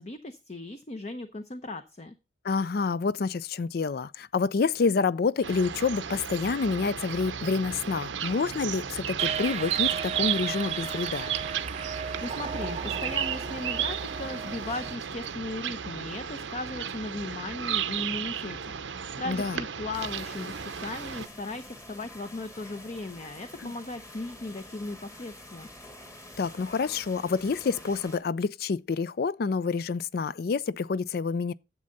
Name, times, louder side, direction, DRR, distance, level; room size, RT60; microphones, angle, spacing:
voice 1, 0.0-2.1 12.2-25.7, left 2 dB, 40° left, 0.8 m, -37 dB
voice 2, 2.4-11.3 19.3-19.6 23.6-23.7 26.4-31.5, left 4 dB, 55° left, 0.4 m, -28 dB
sound 1, 5.4-21.3, right 9 dB, 90° right, 0.8 m, -33 dB
sound 2, 9.2-15.0, right 6 dB, 35° right, 0.4 m, -37 dB
sound 3, 19.9-28.2, left 1 dB, 20° left, 1.6 m, -47 dB
11.0 x 7.7 x 4.0 m
head